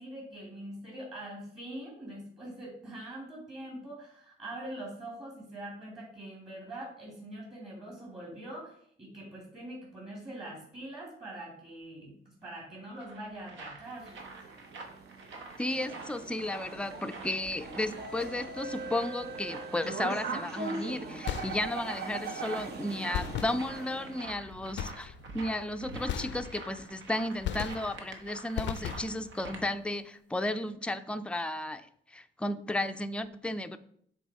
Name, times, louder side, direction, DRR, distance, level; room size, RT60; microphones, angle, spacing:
voice 1, 0.0-14.1, right 1 dB, 25° right, -4 dB, 2.5 m, -43 dB
sound 1, 12.6-29.6, right 3 dB, 75° right, 1.1 m, -47 dB
sound 2, 13.9-24.2, right 4 dB, 55° right, 0.9 m, -40 dB
voice 2, 15.6-31.9 32.1-33.8, left 1 dB, 5° left, 9 dB, 0.4 m, -34 dB
sound 3, 21.3-22.0 23.1-24.1 24.8-25.4 26.1-26.9 27.4-28.2 28.6-29.4, left 10 dB, 65° left, 0.4 m, -37 dB
7.1 x 3.4 x 4.7 m, 0.65 s
cardioid pair, 90°, 20 cm